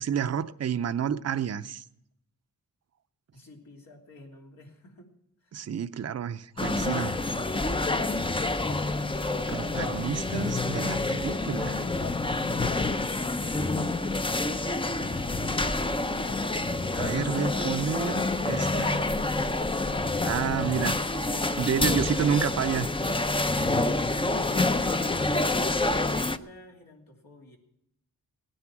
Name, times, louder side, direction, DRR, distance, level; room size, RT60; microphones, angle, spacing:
voice 1, 0.0-1.8 5.5-7.2 9.5-11.9 16.9-19.1 20.2-21.0 21.6-22.9, right 8 dB, 50° right, 0.6 m, -30 dB
voice 2, 3.3-5.1 5.4-5.6 21.7-22.8 25.2-27.6, left 1 dB, 80° left, 3.1 m, -51 dB
sound 1, 6.6-26.4, left 2 dB, 15° left, 0.5 m, -28 dB
17.5 x 9.8 x 6.0 m
wide cardioid pair, 100°, 34 cm